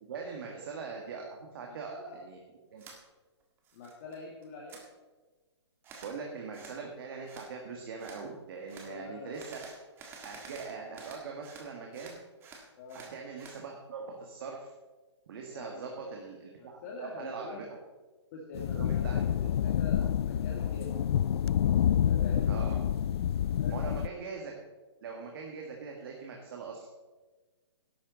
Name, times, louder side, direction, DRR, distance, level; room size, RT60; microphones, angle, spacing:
voice 1, 0.1-1.2 1.5-2.4 2.7-2.8 6.0-9.6 10.2-12.2 12.9-14.7 15.3-17.7 18.7-19.2 22.5-22.8 23.7-24.5 25.0-26.9, right 5 dB, 50° right, 0 dB, 1.9 m, -41 dB
voice 2, 1.7-2.2 3.7-4.8 8.7-9.3 12.8-13.0 15.5-16.2 16.6-17.6 18.3-19.2 19.6-21.1 22.1-22.7 23.6-23.7, left 3 dB, 35° left, -3 dB, 2.1 m, -45 dB
sound 1, 2.8-3.0 3.4-4.2 4.4-4.8 5.8-6.2 6.5-6.8 7.3-7.5 8.0-8.2 8.7-8.9 9.3-11.7 11.9-13.6, right 4 dB, 15° right, 1.6 m, -49 dB
sound 2, 18.5-24.1, left 9 dB, 60° left, 0.4 m, -28 dB
13.0 x 11.5 x 4.1 m, 1.3 s
hypercardioid pair, 160°, 15 cm